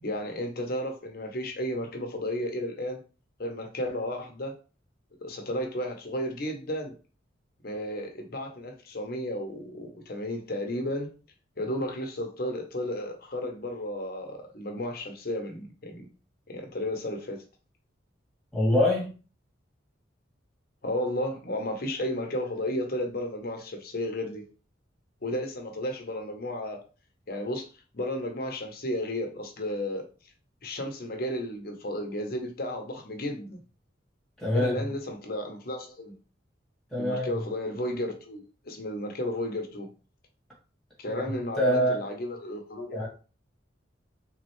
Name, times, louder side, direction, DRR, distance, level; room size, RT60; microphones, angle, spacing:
voice 1, 0.0-3.0 3.4-4.6 5.2-6.9 7.6-11.1 11.6-16.1 16.5-17.4 20.8-24.4 25.2-26.8 27.3-27.7 27.9-30.0 30.6-33.6 34.5-36.2 37.0-39.9 41.0-43.1, left 1 dB, 50° left, 0.9 m, -33 dB
voice 2, 18.5-19.1 34.4-34.7 36.9-37.3 41.0-41.2 41.6-42.1 42.9-43.1, left 1 dB, ahead, 1.8 m, -24 dB
3.6 x 3.2 x 3.1 m
head